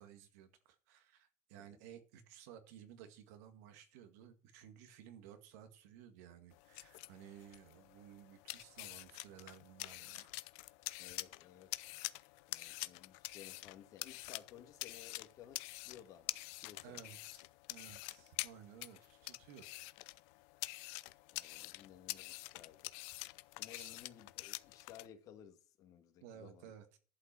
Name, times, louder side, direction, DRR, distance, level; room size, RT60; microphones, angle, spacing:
voice 1, 0.0-10.3 16.8-19.7 23.7-23.9 26.2-27.0, right 9 dB, 80° right, 2.0 m, -56 dB
sound 1, 6.5-25.1, left 22 dB, 70° left, 0.6 m, -47 dB
voice 2, 11.0-17.2 21.3-22.9 23.5-26.7, left 10 dB, 45° left, 1.9 m, -58 dB
11.5 x 5.7 x 7.5 m
cardioid pair, 145°, 8 cm